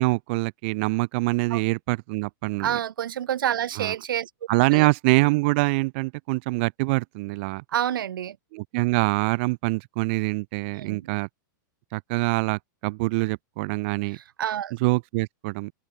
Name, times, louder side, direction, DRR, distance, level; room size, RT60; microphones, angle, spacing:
voice 1, 0.0-2.8 3.8-3.9 4.5-7.6 8.5-11.3 11.9-14.2 14.8-15.7, right 26 dB, 35° right, 0.6 m, -24 dB
voice 2, 2.6-4.3 4.7-4.9 7.7-8.4 10.7-11.1 14.1-14.7, right 10 dB, 90° right, 1.8 m, -28 dB
supercardioid pair, 175°, 11 cm